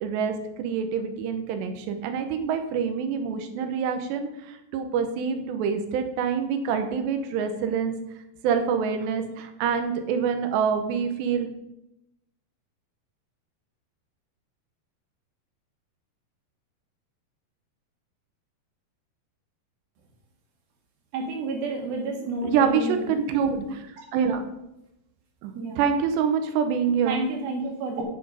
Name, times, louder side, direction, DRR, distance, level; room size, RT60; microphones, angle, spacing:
voice 1, 0.0-7.9 8.4-11.5 22.4-23.8 24.1-24.4 25.4-27.2, right 6 dB, 85° right, 7 dB, 3.2 m, -26 dB
voice 2, 21.1-23.1 25.6-25.8 27.1-28.0, right 3 dB, 65° right, 1 dB, 3.5 m, -30 dB
9.2 x 7.6 x 5.0 m, 0.87 s
omnidirectional pair, 4.8 m